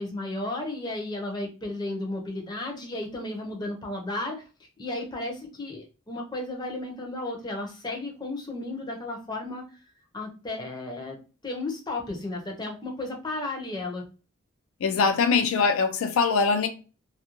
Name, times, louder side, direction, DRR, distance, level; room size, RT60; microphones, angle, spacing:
voice 1, 0.0-4.4 4.8-9.6 10.1-11.2 11.4-14.1, left 2 dB, 20° left, 0.6 m, -34 dB
voice 2, 14.8-16.7, left 5 dB, 75° left, 0.4 m, -22 dB
2.4 x 2.1 x 2.9 m
head